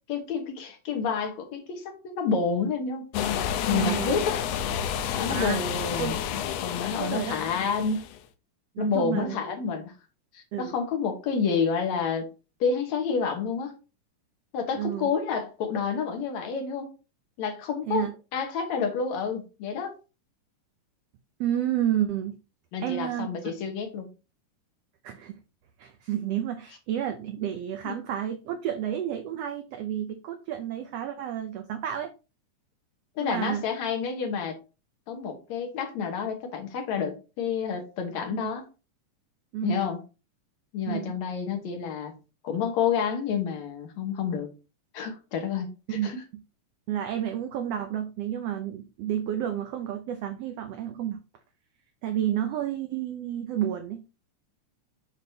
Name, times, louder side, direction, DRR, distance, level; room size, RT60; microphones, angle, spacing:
voice 1, 0.1-3.1 3.7-4.5 5.1-8.0 8.8-9.9 10.3-12.3 12.6-13.8 14.5-16.9 17.4-18.0 18.3-19.9 22.7-24.1 27.8-28.0 33.2-34.5 35.1-38.7 39.6-40.0 40.7-42.1 42.4-44.5 44.9-46.2, left 6 dB, 65° left, 4 dB, 2.3 m, -29 dB
sound 1, 3.1-8.2, left 9 dB, 85° left, 1.4 m, -30 dB
voice 2, 3.7-4.2 5.3-5.6 6.0-6.2 7.0-7.4 8.7-9.4 10.5-10.7 14.8-15.1 17.9-18.1 21.4-22.4 22.8-23.5 25.0-25.4 25.8-32.1 33.2-33.7 38.4-38.5 39.5-39.8 40.9-41.1 45.9-46.1 46.9-51.2 52.0-54.0, right 10 dB, 85° right, 7 dB, 1.4 m, -30 dB
7.1 x 6.1 x 2.8 m, 0.31 s
omnidirectional pair, 3.6 m